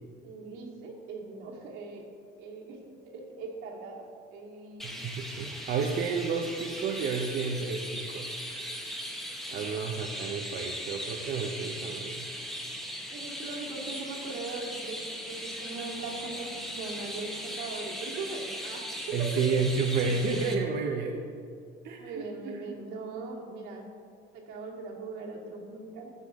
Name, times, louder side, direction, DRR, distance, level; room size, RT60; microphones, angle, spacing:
voice 1, 0.2-2.1 2.4-4.9 9.5-9.6 13.1-19.4 22.0-23.9 24.3-26.1, right 3 dB, 80° right, -3 dB, 2.3 m, -40 dB
Chirp tweet, 4.8-20.5, equal, ahead, 1.1 m, -39 dB
voice 2, 4.8-8.5 9.5-12.3 19.1-21.1 21.8-22.8, right 5 dB, 55° right, 1 dB, 0.8 m, -31 dB
13.5 x 7.6 x 3.7 m, 2.3 s
cardioid pair, 145°, 21 cm